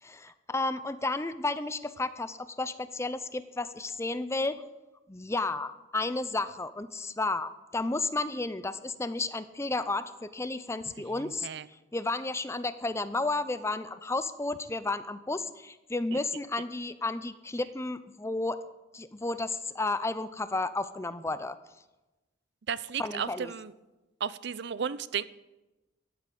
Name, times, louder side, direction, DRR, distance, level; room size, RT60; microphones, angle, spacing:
voice 1, 0.0-4.6 5.1-18.6 18.9-21.6 23.0-23.5, left 2 dB, 15° left, 13 dB, 0.6 m, -32 dB
voice 2, 11.2-11.6 16.1-16.2 22.7-23.7 24.2-25.2, right 7 dB, 60° right, 17 dB, 0.5 m, -34 dB
14.0 x 8.3 x 7.7 m, 1.1 s
head